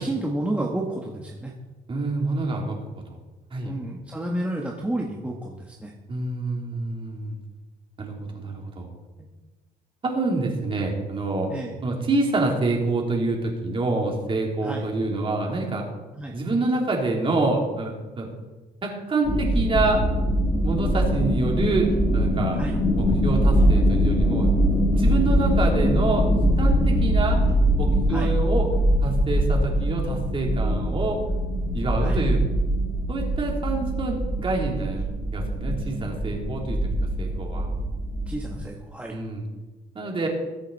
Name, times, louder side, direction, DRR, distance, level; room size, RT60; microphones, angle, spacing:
voice 1, 0.0-1.5 3.6-5.9 11.5-11.8 14.6-14.8 16.2-16.3 22.6-22.8 28.1-28.3 32.0-32.2 38.3-39.1, right 1 dB, 5° right, -1 dB, 1.5 m, -30 dB
voice 2, 1.9-2.8 3.5-3.7 6.1-7.3 8.0-8.9 10.0-11.5 11.8-15.8 16.3-18.3 18.8-20.1 20.6-21.9 22.1-22.6 23.0-24.5 24.9-26.2 26.6-27.4 27.8-28.7 29.0-31.2 31.7-32.4 33.1-36.8 37.2-37.7 39.1-39.5 40.0-40.3, right 2 dB, 30° right, 0 dB, 3.5 m, -26 dB
sound 1, 19.2-38.6, equal, 20° left, 2.6 m, -22 dB
21.5 x 8.2 x 4.2 m, 1.2 s
cardioid pair, 110°, 17 cm